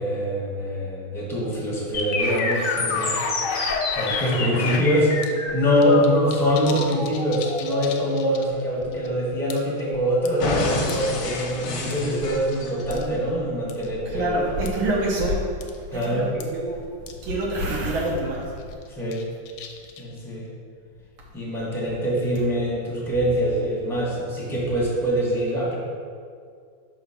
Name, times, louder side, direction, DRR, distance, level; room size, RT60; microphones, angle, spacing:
voice 1, 0.0-3.1 3.9-14.3 15.9-16.3 18.9-19.2 20.0-20.5 21.3-25.8, equal, ahead, -5 dB, 0.7 m, -24 dB
Falling Computer With Crash, 1.9-9.9 10.4-13.0, left 3 dB, 60° left, 0.9 m, -29 dB
sound 1, 2.2-4.9 5.2-5.3 5.6-8.6 8.9-9.1 9.5-9.8 10.3-11.1 11.9-12.6 12.9-13.1 13.7-13.9 14.7-14.8 15.2-15.3 15.6-15.8 16.0-16.1 16.4-16.5 17.1-17.2 17.4-17.5 17.9-18.1 18.6-20.2, left 6 dB, 90° left, 1.5 m, -35 dB
voice 2, 13.9-16.9 17.2-18.6, right 1 dB, 80° right, -3 dB, 1.6 m, -26 dB
5.7 x 3.9 x 5.6 m, 2.2 s
omnidirectional pair, 2.3 m